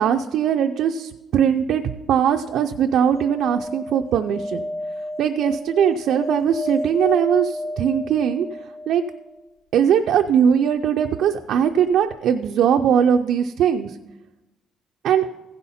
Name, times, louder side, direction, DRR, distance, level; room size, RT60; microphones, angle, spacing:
voice 1, 0.0-1.8 2.1-4.6 5.2-8.5 8.9-9.0 9.7-14.0 15.0-15.3, right 8 dB, 65° right, 4 dB, 0.4 m, -20 dB
sound 1, 3.1-9.3 11.6-11.7 11.8-11.9, left 1 dB, 70° left, 1.6 m, -31 dB
15.5 x 5.6 x 4.2 m, 1.0 s
cardioid pair, 140°, 0 cm